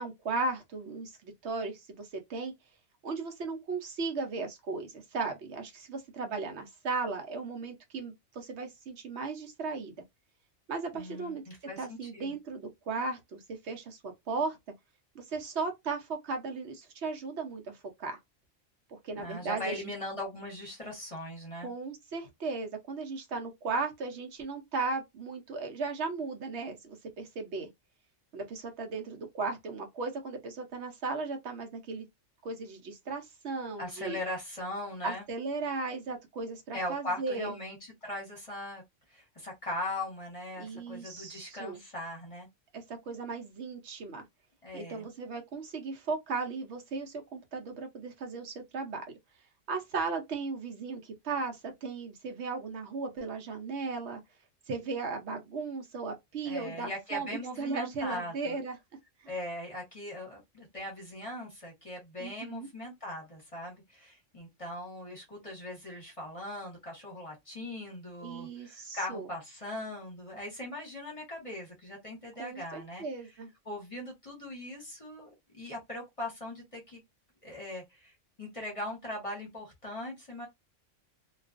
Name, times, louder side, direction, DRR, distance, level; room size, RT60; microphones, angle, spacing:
voice 1, 0.0-2.5 3.0-9.9 10.7-11.4 11.8-14.6 15.1-18.2 18.9-19.9 21.6-27.7 28.3-32.1 32.4-34.2 35.0-37.5 40.6-41.8 42.7-44.2 44.7-49.0 49.7-54.2 54.7-58.8 59.2-59.3 62.2-62.7 68.2-69.3 72.4-73.5, right 4 dB, 65° right, 0.9 m, -36 dB
voice 2, 10.9-12.4 19.2-21.7 33.8-35.2 36.7-38.8 39.1-42.5 44.6-45.1 56.4-58.6 59.3-73.0 73.6-77.0 77.4-78.1 78.4-80.5, left 1 dB, 30° left, 0.9 m, -40 dB
2.4 x 2.3 x 2.4 m
omnidirectional pair, 1.3 m